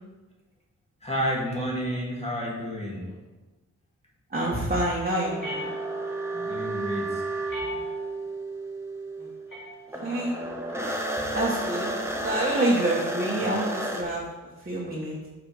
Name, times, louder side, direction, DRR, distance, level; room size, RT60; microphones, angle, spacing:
voice 1, 1.0-3.2 6.3-7.2 7.5-7.8, equal, 20° left, -4 dB, 1.8 m, -31 dB
voice 2, 4.3-5.7 9.2-9.3 10.0-10.4 10.7-10.9 11.3-14.3 14.6-15.3, right 1 dB, 25° right, -6 dB, 1.3 m, -27 dB
sound 1, 5.2-9.6 9.9-14.0, right 2 dB, 10° right, 0.8 m, -32 dB
sound 2, 5.4-6.3 7.5-8.3 9.5-10.3, left 2 dB, 75° left, 2.3 m, -39 dB
5.7 x 5.7 x 4.9 m, 1.2 s
wide cardioid pair, 140°, 33 cm